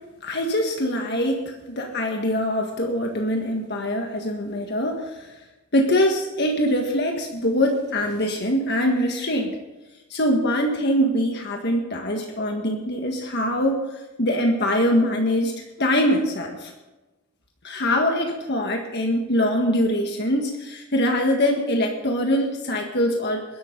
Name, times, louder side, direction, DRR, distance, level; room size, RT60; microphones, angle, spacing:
voice 1, 0.2-5.3 5.7-9.6 10.1-16.7 17.6-23.4, equal, 50° left, 2 dB, 1.7 m, -23 dB
22.0 x 12.0 x 3.9 m, 1.1 s
head